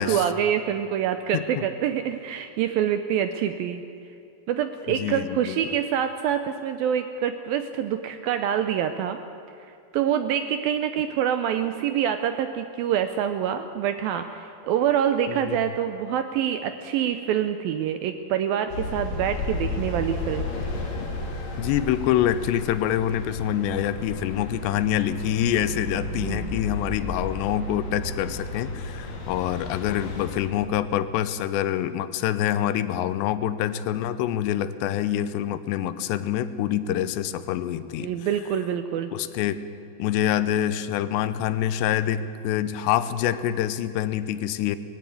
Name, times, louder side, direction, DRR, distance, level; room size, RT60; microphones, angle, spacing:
voice 1, 0.0-3.8 4.5-9.2 9.9-20.5 26.1-26.6 38.0-39.1, right 9 dB, 80° right, 9 dB, 2.2 m, -26 dB
voice 2, 1.3-1.6 4.9-5.6 15.3-15.6 21.6-38.1 39.1-39.6 40.0-44.8, left 11 dB, 85° left, 13 dB, 3.0 m, -26 dB
sound 1, 18.7-30.4, left 2 dB, 65° left, 4.7 m, -33 dB
19.5 x 15.5 x 9.4 m, 2.5 s
omnidirectional pair, 4.9 m